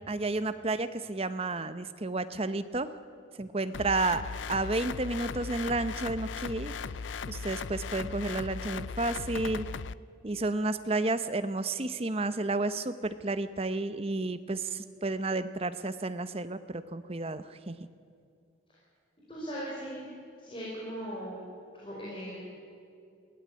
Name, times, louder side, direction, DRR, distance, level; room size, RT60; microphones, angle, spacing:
voice 1, 0.0-2.9 3.4-4.2 4.5-6.7 7.3-9.6 10.2-17.9, right 2 dB, 30° right, 12 dB, 0.8 m, -31 dB
sound 1, 3.7-9.9, left 5 dB, 70° left, 0.5 m, -38 dB
voice 2, 19.3-20.0 20.4-21.4 21.7-22.4, equal, 25° left, -6 dB, 5.0 m, -38 dB
21.5 x 16.0 x 9.7 m, 2.4 s
head